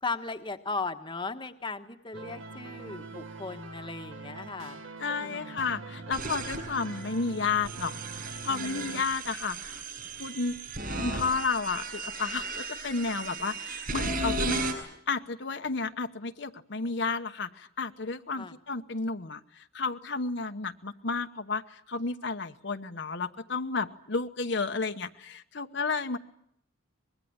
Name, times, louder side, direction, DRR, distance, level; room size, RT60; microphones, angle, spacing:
voice 1, 0.0-4.8 5.2-5.5 18.4-18.5, left 3 dB, 25° left, 7 dB, 1.3 m, -37 dB
sound 1, 2.1-9.0, right 3 dB, 75° right, 1.9 m, -43 dB
voice 2, 5.0-9.8 10.2-10.5 11.0-14.7 15.1-26.2, left 4 dB, 60° left, 6 dB, 1.1 m, -32 dB
sound 2, 6.1-14.7, right 2 dB, 45° right, 7.6 m, -35 dB
25.0 x 21.5 x 9.5 m, 0.71 s
head